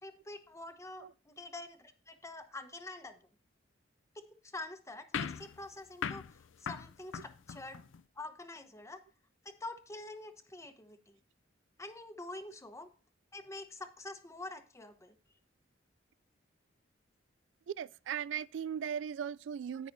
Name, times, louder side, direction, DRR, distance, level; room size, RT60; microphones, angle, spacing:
voice 1, 0.0-3.2 4.1-7.8 8.2-9.0 9.4-11.2 11.8-12.9 13.3-15.2, left 2 dB, 15° left, 0.9 m, -46 dB
sound 1, 5.1-8.0, left 7 dB, 85° left, 0.4 m, -41 dB
voice 2, 17.7-19.9, right 8 dB, 70° right, 0.3 m, -38 dB
17.5 x 5.9 x 2.6 m
head